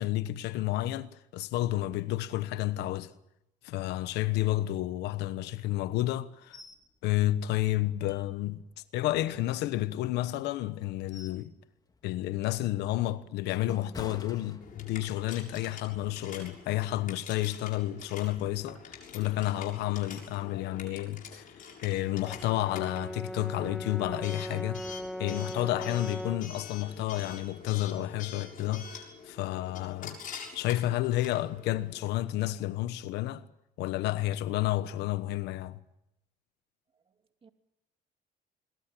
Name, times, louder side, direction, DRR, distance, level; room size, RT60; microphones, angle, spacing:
voice 1, 0.0-3.1 3.6-6.6 7.0-8.6 8.9-11.5 12.0-21.5 21.8-24.8 25.2-30.2 30.5-33.4 33.8-35.8, left 15 dB, 85° left, 1.1 m, -31 dB
sound 1, 6.5-6.8 7.2-7.3 7.8-8.6 9.1-10.1 10.7-11.5 11.9-12.2 12.7-15.2 15.5-15.7, left 4 dB, 25° left, 3.4 m, -48 dB
Coin (dropping) / Alarm, 14.6-32.1, left 6 dB, 50° left, 7.0 m, -47 dB
Brass instrument, 22.3-26.6, equal, ahead, 1.1 m, -39 dB
voice 2, 36.9-37.5, right 5 dB, 30° right, 2.5 m, -63 dB
25.5 x 22.5 x 7.7 m
cardioid pair, 110°, 17 cm